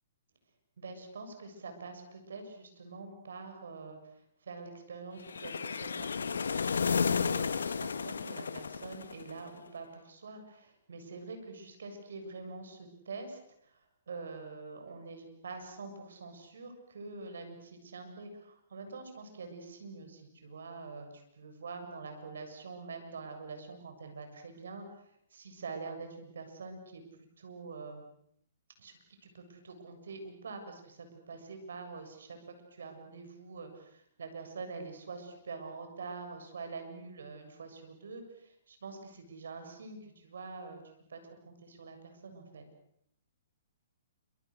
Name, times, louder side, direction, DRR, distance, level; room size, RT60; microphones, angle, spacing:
voice 1, 0.8-24.8 25.3-27.0 27.4-28.0 28.8-32.4 32.7-40.8 41.1-42.6, right 4 dB, 70° right, 6 dB, 7.3 m, -45 dB
sound 1, 5.3-9.5, left 5 dB, 75° left, 1.5 m, -32 dB
28.5 x 27.0 x 6.6 m, 0.72 s
hypercardioid pair, 125°, 0 cm